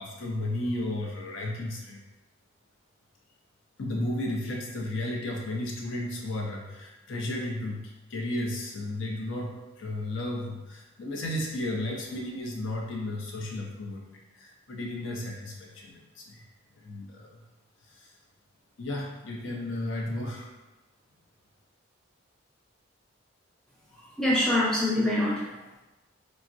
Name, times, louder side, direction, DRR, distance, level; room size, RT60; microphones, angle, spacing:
voice 1, 0.0-2.0 3.8-14.0 14.3-16.4 16.8-17.4 18.0-18.1 18.8-20.5, left 1 dB, 70° left, -1 dB, 0.5 m, -33 dB
voice 2, 23.9-25.8, left 1 dB, 5° left, -7 dB, 0.6 m, -26 dB
3.3 x 2.0 x 2.5 m, 1.0 s
head